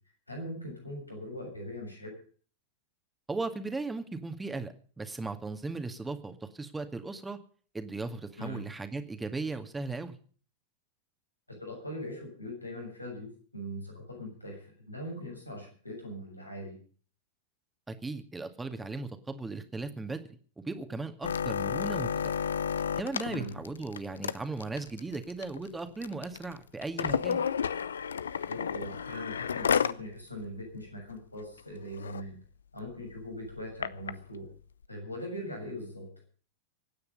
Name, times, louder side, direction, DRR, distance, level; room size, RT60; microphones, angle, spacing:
voice 1, 0.3-2.1 8.4-8.6 11.6-16.8 23.3-23.5 28.5-32.4 32.7-34.5 34.9-36.1, equal, 85° left, 1 dB, 7.1 m, -41 dB
voice 2, 3.3-7.4 7.7-10.1 17.9-20.2 20.6-22.5 23.0-27.4, right 3 dB, 10° right, 8 dB, 2.1 m, -37 dB
sound 1, 21.2-30.0 30.4-30.5 30.8-31.1 31.6-31.7 31.9-32.2 32.9-34.1 34.8-34.9, left 7 dB, 70° left, 0.7 m, -32 dB
24.5 x 9.5 x 5.4 m, 0.43 s
figure-of-eight pair, 90°, 0 cm